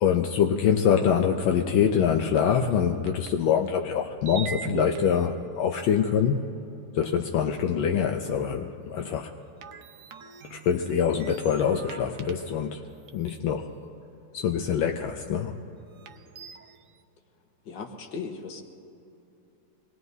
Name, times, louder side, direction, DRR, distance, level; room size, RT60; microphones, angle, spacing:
voice 1, 0.0-6.4 6.9-9.3 10.5-12.9 13.1-13.7 14.3-15.6, left 8 dB, 80° left, 3 dB, 1.5 m, -24 dB
sound 1, 2.4-2.5 3.1-3.7 4.3-6.2 7.0-7.1 9.6-12.7 13.1-13.4 14.6-14.7 16.0-16.9, right 7 dB, 65° right, 0.8 m, -41 dB
voice 2, 17.6-18.6, left 5 dB, 65° left, 3 dB, 1.9 m, -37 dB
25.0 x 20.5 x 2.7 m, 2.9 s
omnidirectional pair, 2.1 m